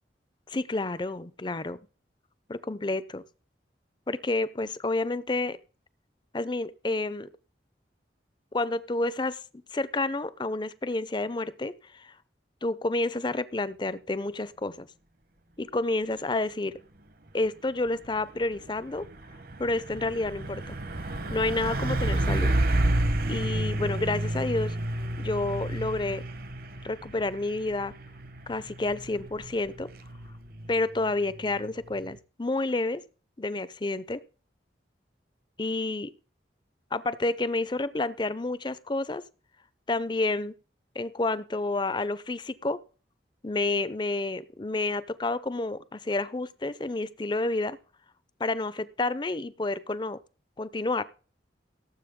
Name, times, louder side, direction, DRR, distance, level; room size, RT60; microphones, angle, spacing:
voice 1, 0.5-1.8 2.5-3.2 4.1-5.6 6.3-7.3 8.5-9.4 9.7-12.1 12.6-14.9 15.6-16.8 17.3-19.0 19.6-20.8 21.3-22.5 23.3-24.8 25.2-26.2 26.8-28.0 28.5-29.9 30.7-33.0 33.4-34.2 35.6-36.1 36.9-39.2 39.9-40.5 41.0-42.8 43.4-47.8 48.4-50.2 50.6-51.0, left 2 dB, 25° left, 16 dB, 0.6 m, -29 dB
Truck, 17.9-32.2, right 1 dB, 55° right, 1.1 m, -31 dB
17.5 x 7.6 x 3.7 m, 0.37 s
head